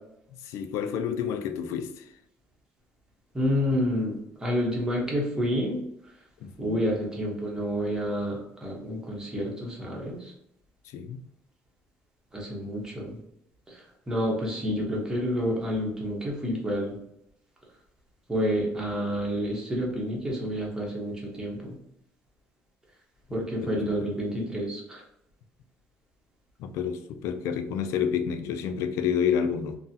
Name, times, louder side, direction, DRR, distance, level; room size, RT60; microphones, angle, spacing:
voice 1, 0.4-2.0 6.4-6.8 10.9-11.2 23.6-24.1 26.6-29.8, left 7 dB, 80° left, 0.3 m, -29 dB
voice 2, 3.3-5.8 6.6-10.2 12.3-13.2 14.1-16.9 18.3-21.8 23.3-25.0, equal, 10° right, 0.8 m, -29 dB
3.7 x 2.0 x 2.7 m
cardioid pair, 150°, 5 cm